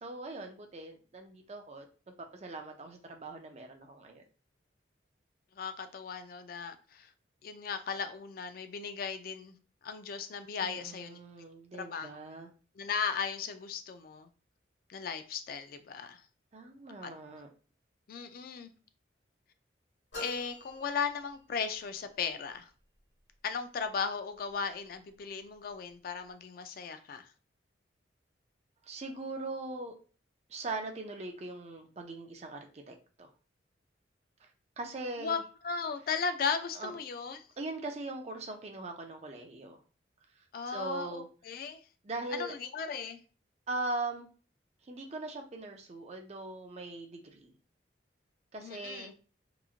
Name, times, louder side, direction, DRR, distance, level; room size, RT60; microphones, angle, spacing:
voice 1, 0.0-1.9 2.3-4.2 10.6-12.5 16.5-17.5 28.8-30.0 30.5-33.3 34.4-34.5 34.8-35.4 36.7-36.9 37.6-39.8 40.7-41.3 42.0-42.5 43.7-44.3 44.9-47.5 48.5-49.1, right 2 dB, 35° right, 0.4 m, -40 dB
voice 2, 5.6-7.1 7.4-9.6 9.8-11.2 11.7-12.1 12.8-14.3 14.9-16.2 17.0-17.1 18.1-18.7 20.2-22.7 23.4-27.3 35.2-37.4 40.5-41.8 42.3-43.2 48.6-49.1, left 6 dB, 50° left, 0.3 m, -36 dB
sound 1, 20.1-21.8, left 2 dB, 70° left, 1.4 m, -46 dB
3.0 x 2.4 x 2.4 m
head